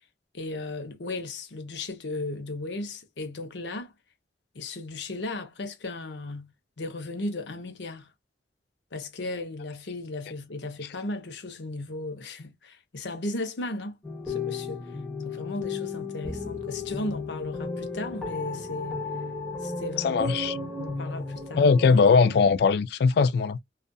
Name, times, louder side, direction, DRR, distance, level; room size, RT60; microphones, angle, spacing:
voice 1, 0.3-3.9 4.5-8.1 8.9-14.0 14.2-14.9 15.2-19.0 19.6-21.6, left 2 dB, 80° left, 0.7 m, -36 dB
sound 1, 14.0-22.5, left 4 dB, 5° left, 0.8 m, -34 dB
voice 2, 20.0-20.6 21.6-23.6, left 5 dB, 60° left, 0.3 m, -20 dB
2.6 x 2.4 x 2.2 m
head